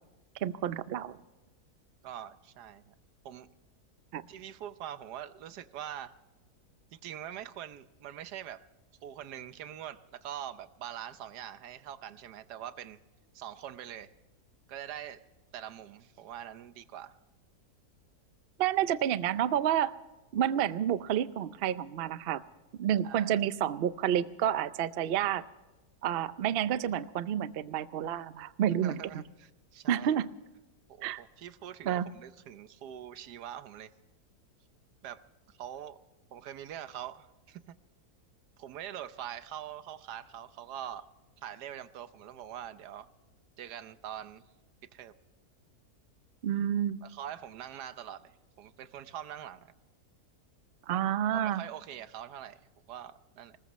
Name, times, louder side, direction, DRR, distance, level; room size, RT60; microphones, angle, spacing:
voice 1, 0.4-1.1 4.1-4.2 18.6-19.9 20.3-22.4 22.8-25.4 26.0-29.2 29.9-30.3 31.0-31.2 31.9-32.1 46.4-47.0 50.9-51.6, right 10 dB, 65° right, 15 dB, 0.6 m, -29 dB
voice 2, 2.0-2.9 3.2-3.5 4.3-6.2 6.9-8.7 9.0-13.0 13.3-14.1 14.7-15.2 15.5-17.2 23.0-23.3 28.8-30.2 30.9-33.9 35.0-36.0 36.3-37.7 38.6-41.1 41.4-43.1 43.6-44.5 44.9-45.1 47.0-49.7 51.3-53.6, right 10 dB, 90° right, 13 dB, 1.3 m, -44 dB
20.0 x 20.0 x 3.1 m, 1.1 s
omnidirectional pair, 1.7 m